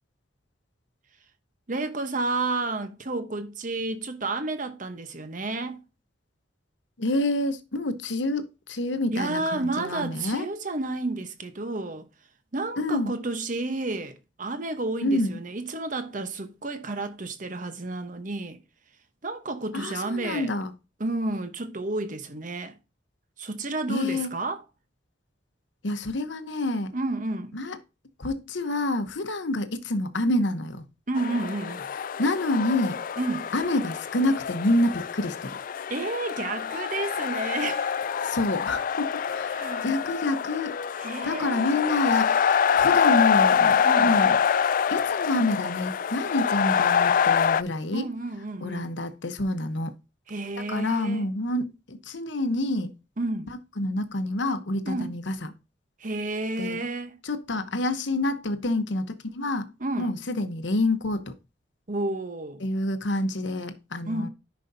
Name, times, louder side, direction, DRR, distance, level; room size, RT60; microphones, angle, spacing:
voice 1, 1.7-5.8 9.1-12.1 12.5-18.6 19.2-20.5 21.0-22.8 23.4-24.6 26.9-27.6 31.1-31.9 33.2-33.5 35.9-38.0 39.5-39.9 41.0-42.0 43.8-44.1 47.9-48.9 50.3-51.3 53.2-53.5 54.9-55.1 56.0-57.1 59.8-60.1 61.9-62.6 64.1-64.3, right 2 dB, 45° right, 1.0 m, -31 dB
voice 2, 7.0-10.5 12.8-13.1 15.0-15.4 19.7-20.7 23.9-24.3 25.8-26.9 27.5-27.8 28.2-30.9 32.2-33.0 33.5-35.6 38.2-40.8 41.0-44.4 44.9-48.1 48.6-49.9 50.6-52.9 53.8-55.5 56.6-56.8 57.2-61.3 62.6-64.3, left 1 dB, 70° left, 1.0 m, -28 dB
sound 1, 31.1-47.6, left 7 dB, 45° left, 0.3 m, -25 dB
10.5 x 5.3 x 2.7 m
head